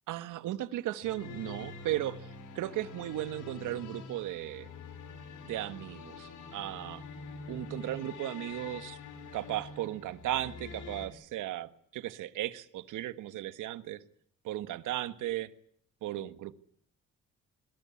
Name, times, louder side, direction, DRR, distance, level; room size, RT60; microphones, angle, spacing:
voice 1, 0.1-2.3 2.5-4.7 5.4-7.0 7.5-9.0 9.3-14.0 14.4-15.5 16.0-16.5, right 14 dB, 85° right, 13 dB, 1.5 m, -36 dB
sound 1, 1.0-11.1, left 4 dB, 80° left, 5.3 m, -46 dB
22.5 x 20.0 x 8.5 m, 0.65 s
cardioid pair, 90°, 30 cm